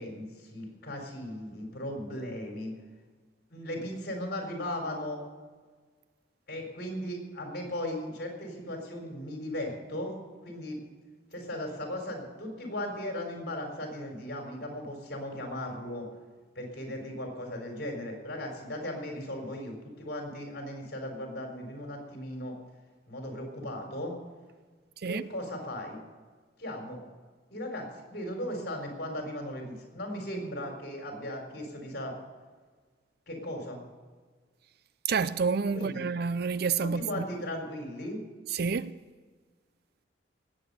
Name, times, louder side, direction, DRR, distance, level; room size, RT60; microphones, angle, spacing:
voice 1, 0.0-2.7 3.5-5.2 6.5-10.2 10.4-10.8 11.3-16.1 16.5-22.6 23.1-24.1 25.0-26.0 26.6-27.0 27.5-32.2 33.3-33.8 35.7-36.0 36.8-38.2, left 1 dB, 55° left, 4.2 m, -37 dB
voice 2, 35.1-37.2 38.5-38.9, right 5 dB, 55° right, 0.5 m, -29 dB
18.5 x 8.3 x 6.8 m
head